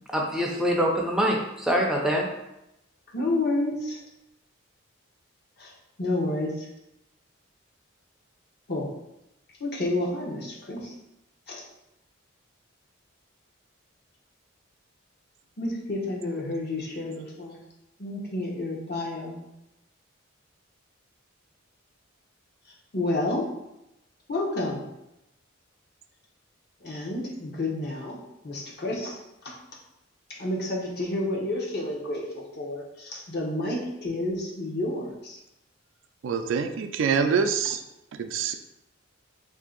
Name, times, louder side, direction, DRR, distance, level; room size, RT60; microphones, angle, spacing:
voice 1, 0.1-2.3, equal, 5° right, -1 dB, 0.4 m, -24 dB
voice 2, 3.1-4.0 5.6-5.7 6.0-6.7 8.7-8.9 9.6-10.9 11.5-11.6 15.6-17.6 18.0-19.4 22.9-23.4 24.3-24.8 26.8-28.2 28.4-29.5 30.3-35.4, left 2 dB, 50° left, -2 dB, 0.8 m, -30 dB
voice 3, 36.2-37.8 38.1-38.5, right 6 dB, 65° right, 7 dB, 0.3 m, -25 dB
3.2 x 2.7 x 3.7 m, 0.88 s
head